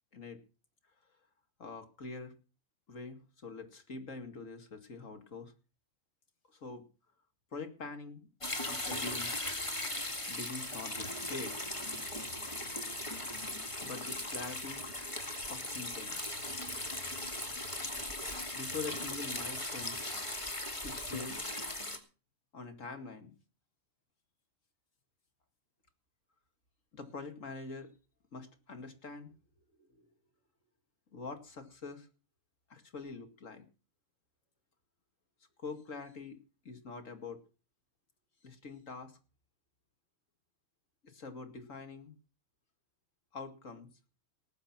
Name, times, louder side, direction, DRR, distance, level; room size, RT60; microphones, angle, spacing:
voice 1, 1.6-2.3 2.9-5.5 6.5-6.8 7.5-8.3 8.7-9.3 10.3-11.7 13.8-14.8 15.5-16.2 18.5-20.0 20.8-21.4 22.5-23.3 26.9-27.9 28.3-29.3 29.8-30.1 31.1-32.1 32.7-33.6 35.6-36.4 36.6-37.4 38.4-39.2 41.0-42.1 43.3-43.9, left 4 dB, 70° left, 7 dB, 2.6 m, -44 dB
sound 1, 8.4-22.0, left 1 dB, 25° left, 2.1 m, -38 dB
19.0 x 8.3 x 5.9 m, 0.34 s
omnidirectional pair, 1.4 m